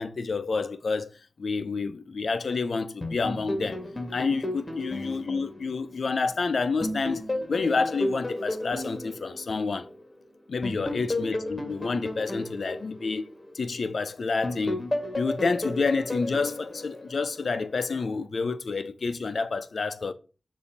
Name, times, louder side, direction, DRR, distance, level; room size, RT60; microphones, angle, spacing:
voice 1, 0.0-3.8 4.1-9.9 10.5-14.9 15.1-20.1, left 4 dB, 75° left, 0.6 m, -29 dB
sound 1, 3.0-6.3 6.8-10.1 10.6-13.9 14.4-17.7, left 1 dB, 30° left, 1.7 m, -33 dB
6.9 x 2.7 x 5.1 m
cardioid pair, 40°, 0 cm